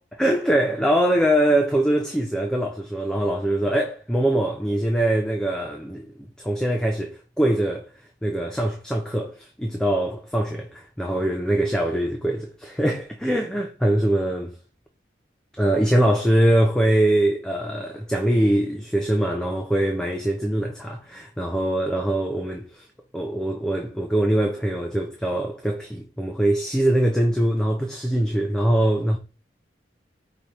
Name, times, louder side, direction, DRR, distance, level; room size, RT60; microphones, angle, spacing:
voice 1, 0.1-7.9 8.2-14.6 15.6-22.9 23.1-29.2, right 1 dB, 5° left, 0.4 m, -23 dB
4.9 x 2.8 x 2.9 m
head